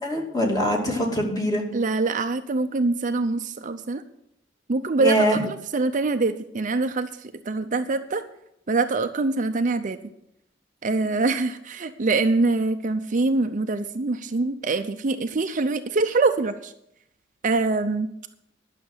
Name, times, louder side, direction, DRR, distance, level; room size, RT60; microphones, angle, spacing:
voice 1, 0.0-1.6 5.0-5.4, equal, 20° left, 0 dB, 2.6 m, -23 dB
voice 2, 1.7-4.0 4.7-8.2 8.7-10.0 10.8-16.7 17.4-18.1, right 3 dB, 45° right, 8 dB, 0.6 m, -24 dB
11.0 x 6.6 x 7.9 m, 0.76 s
head